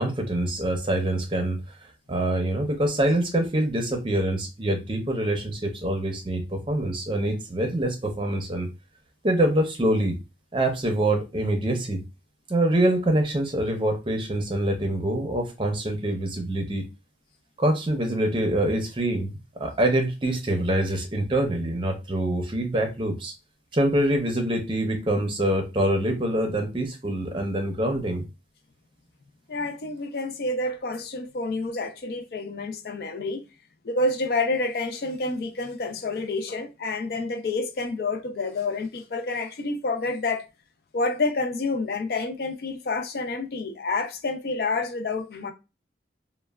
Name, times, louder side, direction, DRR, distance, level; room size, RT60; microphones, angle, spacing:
voice 1, 0.0-1.6 2.1-8.7 9.2-10.2 10.5-12.0 12.5-16.8 17.6-23.3 23.7-28.2, right 1 dB, 30° right, 0.5 m, -25 dB
voice 2, 29.5-33.4 33.8-40.5 40.9-45.5, left 3 dB, 60° left, 0.4 m, -28 dB
3.1 x 2.1 x 2.2 m
head